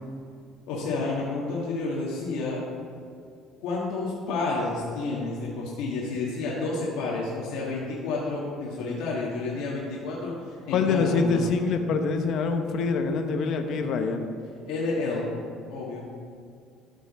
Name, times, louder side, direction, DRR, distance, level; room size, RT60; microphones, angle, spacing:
voice 1, 0.7-2.6 3.6-11.4 14.7-15.3 15.7-16.1, left 3 dB, 85° left, -5 dB, 1.6 m, -30 dB
voice 2, 10.7-14.3, left 4 dB, 55° left, 6 dB, 0.8 m, -25 dB
13.5 x 5.6 x 4.2 m, 2.2 s
cardioid pair, 140°, 0 cm